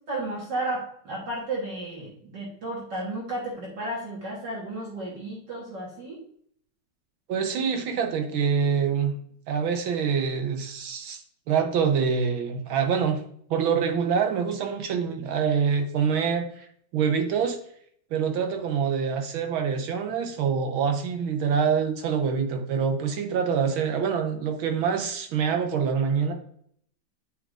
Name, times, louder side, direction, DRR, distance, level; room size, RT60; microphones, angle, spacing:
voice 1, 0.1-6.2, right 2 dB, 60° right, -3 dB, 1.9 m, -33 dB
voice 2, 7.3-9.1 9.5-11.2 11.5-13.2 13.5-16.7 16.9-17.6 18.1-26.3, right 6 dB, 75° right, 5 dB, 1.7 m, -25 dB
8.8 x 4.8 x 2.5 m, 0.64 s
omnidirectional pair, 2.3 m